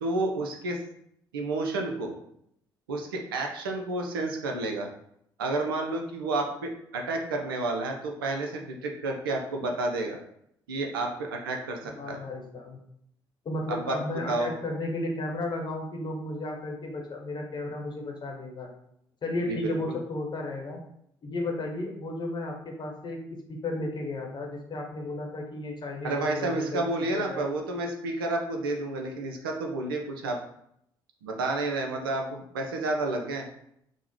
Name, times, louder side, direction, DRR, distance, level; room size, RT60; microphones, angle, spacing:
voice 1, 0.0-0.8 1.3-2.2 2.9-4.9 5.4-10.2 10.7-12.2 13.7-14.5 19.5-20.0 26.0-30.4 31.2-33.5, right 2 dB, 80° right, 2 dB, 0.4 m, -30 dB
voice 2, 11.8-12.8 13.4-18.7 19.2-20.8 21.2-23.2 23.5-26.8 27.1-27.5, left 2 dB, 40° left, 1 dB, 0.9 m, -34 dB
3.5 x 2.0 x 3.1 m, 0.73 s
figure-of-eight pair, 50°, 12 cm